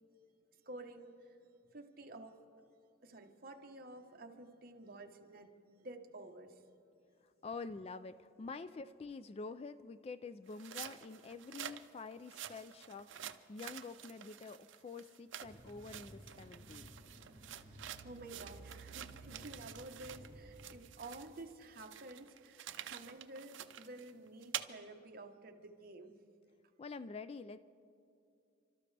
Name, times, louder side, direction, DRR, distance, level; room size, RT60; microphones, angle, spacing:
voice 1, 0.5-1.5 1.7-2.4 3.0-5.5 5.8-6.6 17.5-26.1, right 2 dB, 50° right, 4 dB, 1.1 m, -51 dB
voice 2, 7.4-16.9 26.8-27.6, left 4 dB, 30° left, 12 dB, 0.3 m, -47 dB
sound 1, 10.5-20.3 20.6-24.6, right 10 dB, 75° right, 0.6 m, -48 dB
sound 2, 15.4-20.8, right 1 dB, 15° right, 3.8 m, -55 dB
29.5 x 13.0 x 3.3 m, 2.5 s
head